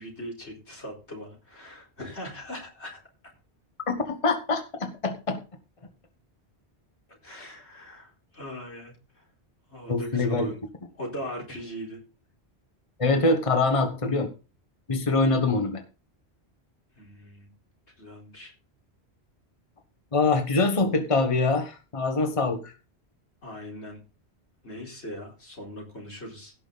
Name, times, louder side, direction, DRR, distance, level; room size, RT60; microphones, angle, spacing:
voice 1, 0.0-3.0 7.2-9.2 9.7-10.6 10.9-12.0 17.0-17.5 18.0-18.5 23.4-24.0 24.6-26.5, equal, 85° left, -1 dB, 4.5 m, -40 dB
voice 2, 3.9-5.4 9.9-10.5 13.0-14.3 14.9-15.8 20.1-22.7, left 3 dB, 30° left, 6 dB, 1.3 m, -24 dB
17.0 x 6.0 x 4.0 m, 0.33 s
omnidirectional pair, 1.1 m